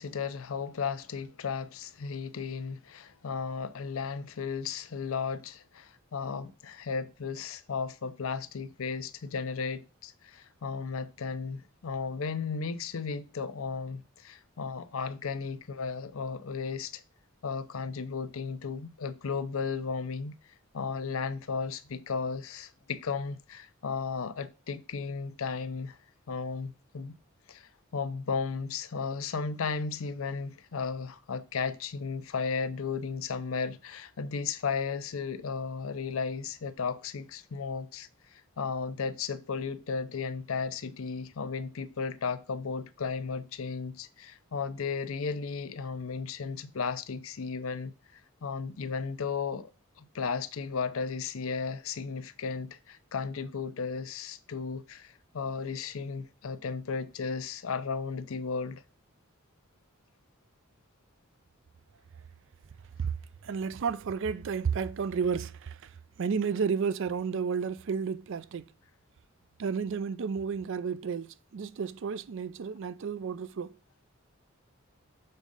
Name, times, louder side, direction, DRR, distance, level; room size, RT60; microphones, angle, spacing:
voice 1, 0.0-17.0 17.4-20.3 20.7-26.0 26.3-27.2 27.5-49.7 50.0-58.8, left 5 dB, 70° left, 0.6 m, -35 dB
voice 2, 63.4-65.9 66.2-68.7 69.6-73.8, right 6 dB, 60° right, 0.4 m, -32 dB
6.7 x 3.7 x 5.2 m
head